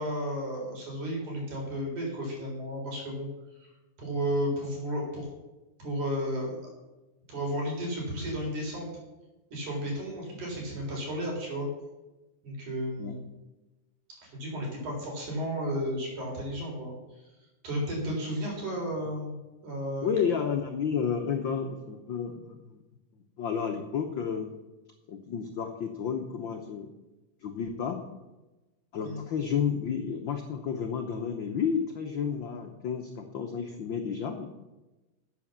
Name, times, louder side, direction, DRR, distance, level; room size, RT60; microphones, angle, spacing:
voice 1, 0.0-3.3 3.6-3.7 4.0-5.3 5.8-6.7 7.3-8.9 9.5-11.7 12.4-13.2 14.2-17.3 17.6-19.3 19.6-20.1 29.0-29.2, equal, 85° right, -2 dB, 5.5 m, -33 dB
voice 2, 20.0-22.8 23.4-24.5 25.1-26.9 27.4-28.0 28.9-34.5, left 7 dB, 75° left, 4 dB, 1.1 m, -31 dB
11.0 x 8.2 x 7.2 m, 1.1 s
omnidirectional pair, 3.4 m